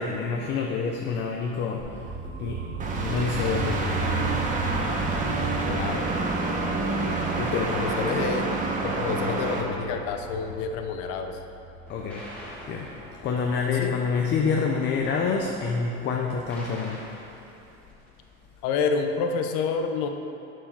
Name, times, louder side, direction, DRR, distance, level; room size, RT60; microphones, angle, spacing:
voice 1, 0.0-4.5 7.4-8.5 11.9-12.3 12.7-12.9 13.2-17.1, left 5 dB, 35° left, 1 dB, 0.7 m, -28 dB
sound 1, 1.8-13.7, right 3 dB, 40° right, 1.3 m, -36 dB
sound 2, 2.8-9.6, right 3 dB, 25° right, 1.0 m, -28 dB
voice 2, 5.7-6.1 7.7-8.5 8.8-11.4 13.8-13.9 18.6-20.1, left 5 dB, 70° left, 5 dB, 0.9 m, -28 dB
sound 3, 7.8-9.2 11.9-18.4, equal, 5° left, 1.9 m, -45 dB
9.1 x 4.7 x 6.0 m, 2.7 s
cardioid pair, 135°, 30 cm